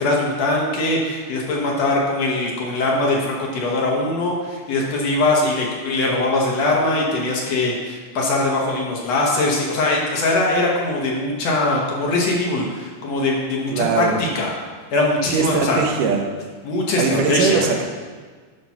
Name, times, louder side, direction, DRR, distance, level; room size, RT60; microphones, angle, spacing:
voice 1, 0.0-14.5 14.9-15.8 16.6-17.7, left 2 dB, 60° left, -2 dB, 2.1 m, -21 dB
voice 2, 13.7-14.2 15.3-16.3 17.0-17.9, right 5 dB, 85° right, 2 dB, 2.5 m, -20 dB
10.5 x 4.1 x 5.8 m, 1.5 s
omnidirectional pair, 3.6 m